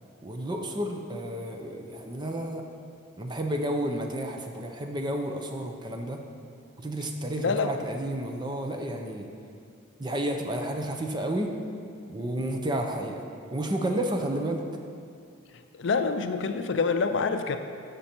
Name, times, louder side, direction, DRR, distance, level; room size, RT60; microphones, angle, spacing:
voice 1, 0.2-2.6 3.2-6.2 6.8-9.3 10.0-11.5 12.1-13.3 13.5-14.6, right 1 dB, 20° right, 3 dB, 0.7 m, -31 dB
voice 2, 7.4-7.7 15.7-17.6, left 4 dB, 60° left, 8 dB, 0.5 m, -26 dB
14.0 x 5.3 x 4.5 m, 2.3 s
head